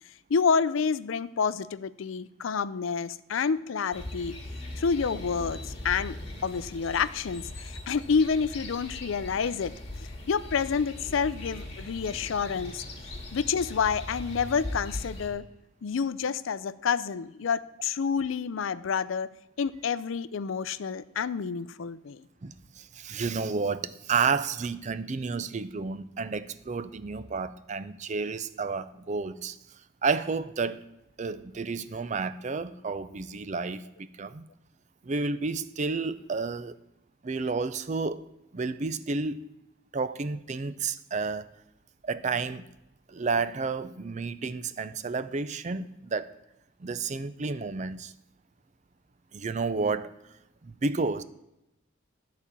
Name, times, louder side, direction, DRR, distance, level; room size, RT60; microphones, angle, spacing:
voice 1, 0.3-4.4 4.8-6.2 6.4-12.8 13.3-15.4 15.8-19.3 19.6-22.2, left 6 dB, 75° left, 0.5 m, -28 dB
sound 1, 3.9-15.3, left 1 dB, 30° left, 2.0 m, -40 dB
voice 2, 22.4-29.6 30.0-30.9 31.2-34.4 35.0-36.8 37.2-38.2 38.5-39.5 39.9-41.5 42.0-42.7 43.1-46.3 46.8-48.1 49.3-50.1 50.6-51.2, right 4 dB, 35° right, 0.4 m, -31 dB
12.5 x 4.2 x 8.3 m
head